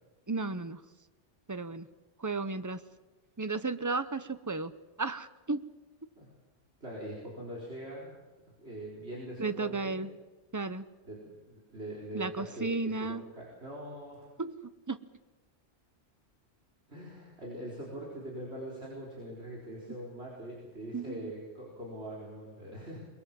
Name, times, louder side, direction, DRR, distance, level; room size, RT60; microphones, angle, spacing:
voice 1, 0.3-0.8 1.5-1.8 2.2-2.8 3.4-4.7 5.0-5.6 9.4-10.1 10.5-10.8 12.1-13.2 14.4-14.5 14.9-15.0 20.9-21.3, right 3 dB, 20° right, 12 dB, 0.7 m, -33 dB
voice 2, 6.8-8.1 8.6-10.1 11.0-11.2 11.5-14.3 16.9-23.0, right 1 dB, 60° right, -5 dB, 4.9 m, -42 dB
22.5 x 21.5 x 7.6 m, 1.2 s
omnidirectional pair, 1.2 m